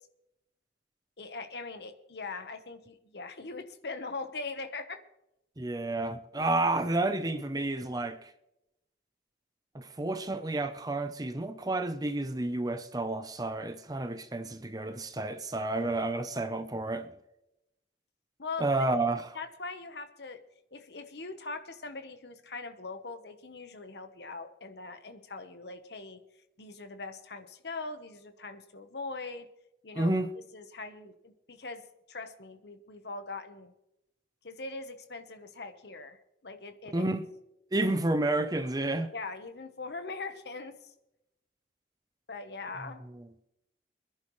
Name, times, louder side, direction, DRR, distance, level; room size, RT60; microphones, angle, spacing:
voice 1, 1.2-5.0 18.4-18.7 19.3-20.4 20.7-26.2 26.6-29.5 29.8-30.1 30.5-33.7 34.4-37.1 37.8-37.9 39.1-40.9 42.3-43.0, left 3 dB, 65° left, 1.1 m, -41 dB
voice 2, 5.6-8.3 9.7-17.1 18.6-19.4 29.9-30.3 36.9-37.2 37.7-39.1 42.8-43.2, right 2 dB, 20° right, 0.6 m, -30 dB
25.0 x 11.0 x 3.2 m
head